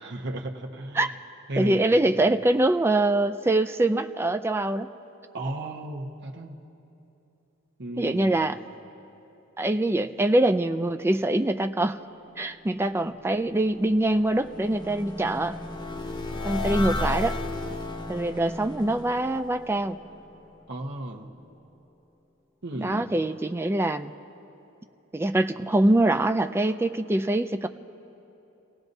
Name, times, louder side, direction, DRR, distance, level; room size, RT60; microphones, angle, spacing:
voice 1, 0.0-1.0 1.5-2.1 5.3-6.6 7.8-8.4 20.7-21.3 22.6-23.1, right 1 dB, 55° right, 0 dB, 1.2 m, -34 dB
voice 2, 1.6-4.9 8.0-8.6 9.6-12.0 12.4-15.6 16.4-17.4 18.1-20.0 22.8-24.1 25.1-27.7, right 1 dB, 10° right, 8 dB, 0.4 m, -24 dB
sound 1, 13.4-20.5, left 2 dB, 20° left, 0.7 m, -34 dB
30.0 x 17.5 x 2.7 m, 2.9 s
head